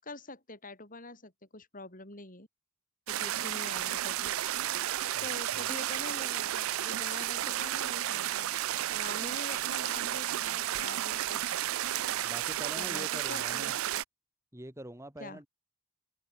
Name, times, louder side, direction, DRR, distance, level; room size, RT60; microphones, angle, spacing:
voice 1, 0.0-2.5 3.1-4.3 5.2-8.5 8.9-11.6 12.8-13.7 15.2-15.4, left 2 dB, 40° left, 7.8 m, -45 dB
sound 1, 3.1-14.0, right 13 dB, 75° right, 0.4 m, -32 dB
voice 2, 12.2-13.8 14.5-15.5, right 1 dB, 15° right, 2.2 m, -44 dB
open air
head